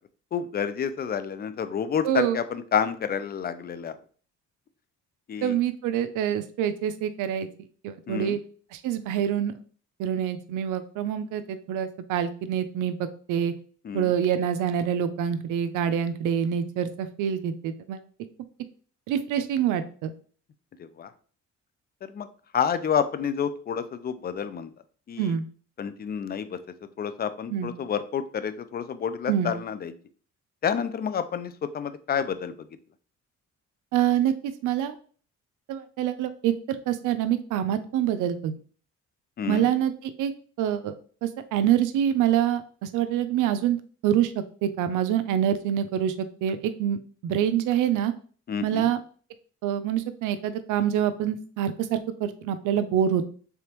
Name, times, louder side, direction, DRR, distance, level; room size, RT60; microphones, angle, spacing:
voice 1, 0.3-3.9 5.3-5.6 8.1-8.4 13.8-14.1 20.8-21.1 22.1-22.3 22.5-24.7 25.1-25.4 25.8-26.6 27.0-29.9 30.6-32.5 39.4-39.7 48.5-48.9, left 7 dB, 35° left, 12 dB, 0.4 m, -29 dB
voice 2, 2.0-2.4 5.4-7.5 7.8-8.4 8.7-9.5 10.0-13.5 13.9-18.0 19.1-20.1 25.2-25.4 27.5-27.7 29.3-29.5 33.9-35.0 35.7-38.5 39.5-40.3 40.6-41.0 41.2-48.1 48.6-49.0 49.6-53.2, right 9 dB, 90° right, 11 dB, 0.5 m, -26 dB
3.4 x 3.4 x 2.9 m, 0.43 s
cardioid pair, 90°, 30 cm